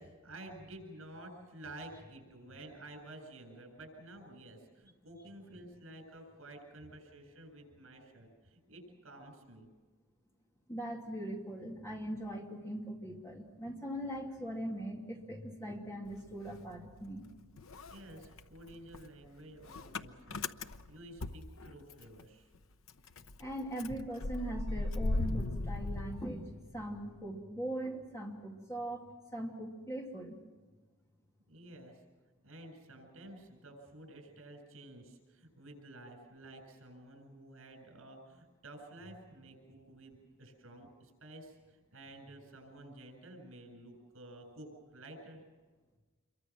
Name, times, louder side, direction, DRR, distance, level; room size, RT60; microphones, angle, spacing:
voice 1, 0.0-9.7 17.9-22.5 31.5-32.0 32.4-45.4, right 1 dB, 75° right, 5 dB, 7.6 m, -52 dB
voice 2, 10.7-17.2 23.4-29.0 29.3-30.4, right 1 dB, 15° left, 0 dB, 2.6 m, -40 dB
Motor vehicle (road) / Engine starting, 16.1-17.3 17.6-22.2 22.5-22.6 22.9-27.0, left 2 dB, 75° left, 0.8 m, -38 dB
27.5 x 23.5 x 6.2 m, 1.3 s
head